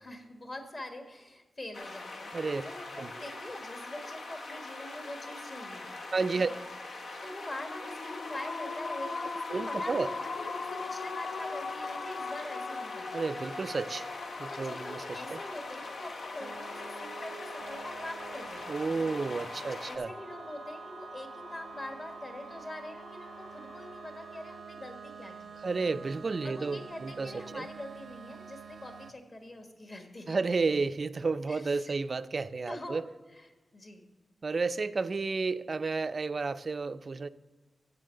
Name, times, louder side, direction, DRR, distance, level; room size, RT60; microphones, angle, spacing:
voice 1, 0.0-5.9 6.5-6.6 7.0-13.4 14.5-19.3 19.8-25.7 26.4-30.4 31.5-32.0 32.7-33.0 33.4-33.5 33.7-34.1, left 1 dB, 40° left, 5 dB, 1.4 m, -44 dB
sound 1, 1.7-20.0, left 2 dB, 85° left, 1.1 m, -43 dB
voice 2, 6.1-6.5 9.5-10.1 13.1-14.1 14.4-15.4 18.7-20.1 25.6-27.7 30.3-33.1 34.4-37.3, right 4 dB, 45° right, 13 dB, 0.4 m, -31 dB
sound 2, 7.3-24.6, left 4 dB, 60° left, 0.4 m, -42 dB
sound 3, 16.4-29.1, right 6 dB, 85° right, 0.6 m, -48 dB
7.7 x 7.5 x 6.4 m, 1.3 s
wide cardioid pair, 125°, 0 cm